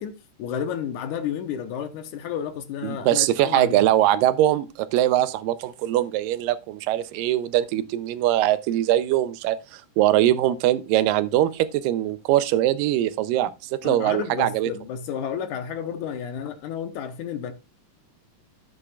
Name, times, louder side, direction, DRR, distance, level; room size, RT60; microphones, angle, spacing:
voice 1, 0.0-3.8 13.8-17.5, left 8 dB, 75° left, 2.2 m, -31 dB
voice 2, 2.8-14.7, right 13 dB, 85° right, 2.3 m, -22 dB
13.0 x 8.1 x 2.4 m
omnidirectional pair, 3.8 m